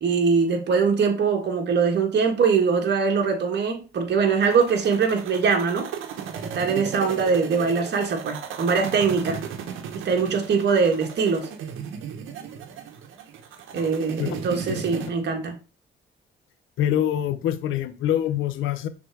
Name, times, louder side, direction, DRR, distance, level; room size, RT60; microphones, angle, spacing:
voice 1, 0.0-5.9 6.5-9.4 9.9-11.5 13.7-15.5, right 5 dB, 60° right, 1.8 m, -22 dB
sound 1, 4.4-15.1, right 8 dB, 85° right, 1.1 m, -35 dB
voice 2, 16.8-18.9, left 11 dB, 85° left, 0.8 m, -25 dB
6.0 x 3.9 x 4.7 m
cardioid pair, 90°, 20 cm